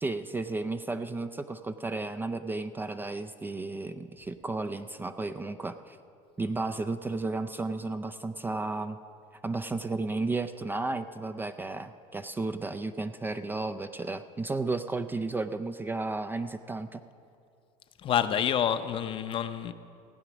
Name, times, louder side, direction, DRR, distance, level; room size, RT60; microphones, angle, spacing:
voice 1, 0.0-6.0 6.4-9.0 9.4-17.0, right 3 dB, 15° right, 9 dB, 0.4 m, -33 dB
voice 2, 18.0-19.7, left 9 dB, 35° left, 11 dB, 0.6 m, -28 dB
16.0 x 8.9 x 6.1 m, 2.5 s
cardioid pair, 130°, 15 cm